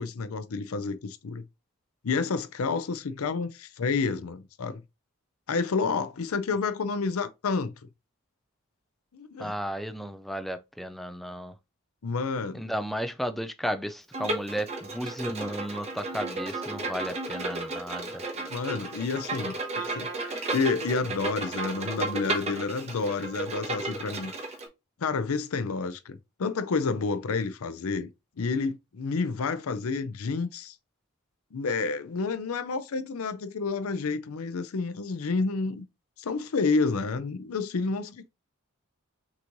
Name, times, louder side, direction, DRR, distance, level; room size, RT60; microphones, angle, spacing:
voice 1, 0.0-1.5 2.0-4.8 5.5-7.7 9.1-9.5 12.0-12.6 18.4-24.3 25.0-28.1 28.4-30.8 31.5-35.9 36.2-38.3, left 4 dB, 75° left, 0.5 m, -29 dB
voice 2, 9.4-11.5 12.5-18.2, equal, ahead, 0.3 m, -34 dB
Bowed string instrument, 14.1-24.7, right 2 dB, 30° right, 0.9 m, -34 dB
6.1 x 3.0 x 2.6 m
head